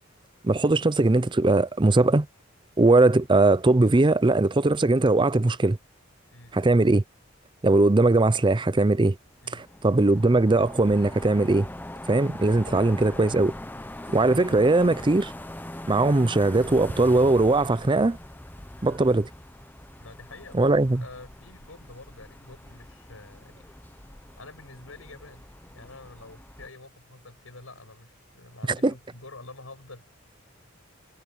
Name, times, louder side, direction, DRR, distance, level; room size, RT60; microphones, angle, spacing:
voice 1, 0.4-2.3 2.8-5.8 6.5-7.0 7.6-9.2 9.5-11.7 12.1-13.5 14.1-15.3 15.9-18.2 18.8-19.3 20.5-21.0 28.7-28.9, right 2 dB, 25° right, 0.5 m, -20 dB
sound 1, 9.3-26.7, left 1 dB, 10° left, 0.8 m, -42 dB
voice 2, 20.0-20.7 21.0-23.7 24.4-30.1, left 2 dB, 80° left, 6.4 m, -47 dB
head